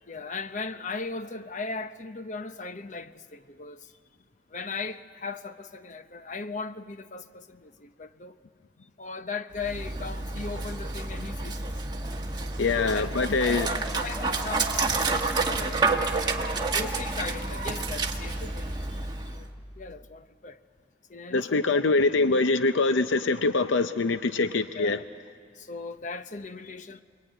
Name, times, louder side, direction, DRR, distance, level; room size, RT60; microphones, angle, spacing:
voice 1, 0.1-3.9 4.5-8.4 9.0-11.7 12.6-16.0 16.7-19.5 19.8-20.6 21.1-21.8 24.7-25.0 25.6-27.0, left 4 dB, 40° left, 0.8 m, -38 dB
Dog, 9.5-19.5, right 3 dB, 25° right, 1.5 m, -29 dB
voice 2, 12.6-13.7 21.3-25.0, left 3 dB, 90° left, 0.6 m, -24 dB
28.0 x 22.0 x 9.2 m
head